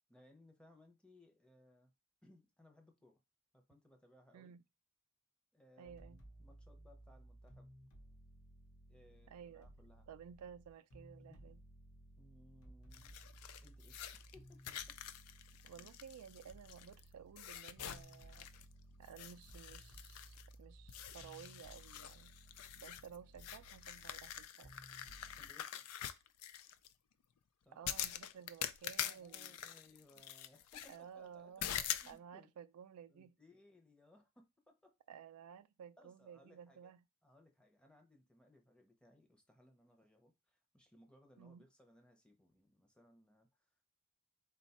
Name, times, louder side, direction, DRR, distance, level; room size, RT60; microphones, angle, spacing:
voice 1, 0.1-1.9 2.2-3.2 3.5-4.5 5.5-7.7 8.9-10.1 11.3-11.4 12.2-13.2 13.6-15.0 15.7-15.9 25.4-25.9 27.6-27.8 29.0-32.5 33.1-35.0 36.0-36.9 37.2-43.7, left 1 dB, 5° left, 0.7 m, -65 dB
voice 2, 5.8-6.2 9.3-9.7 10.1-11.6 15.6-18.5 19.0-22.3 22.7-24.7 27.8-29.6 30.9-31.7 32.1-33.3 35.1-37.0 41.4-41.6, right 8 dB, 80° right, 0.3 m, -55 dB
sound 1, 5.9-25.5, right 1 dB, 65° left, 0.9 m, -59 dB
sound 2, 12.9-17.0 17.4-18.7 19.0-20.5 20.9-26.9 27.8-31.0 31.6-32.1, left 10 dB, 90° left, 0.4 m, -45 dB
4.1 x 2.3 x 4.1 m
head